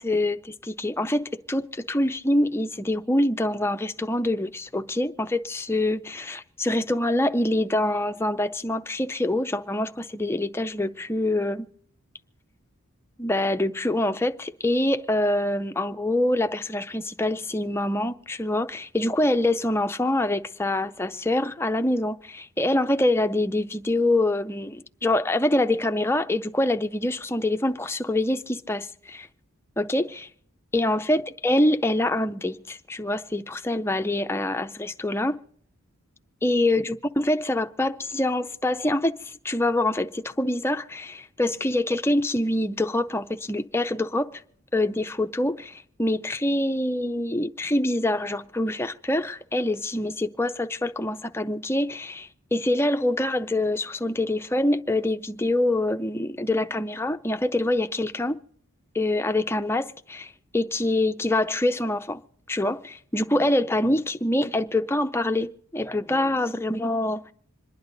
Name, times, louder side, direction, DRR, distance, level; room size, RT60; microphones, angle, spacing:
voice 1, 0.0-11.7 13.2-29.3 29.8-30.3 30.7-35.4 36.4-44.4 44.7-58.4 58.9-62.2 62.5-67.2, left 1 dB, 10° left, 0.5 m, -25 dB
26.5 x 10.5 x 3.9 m
head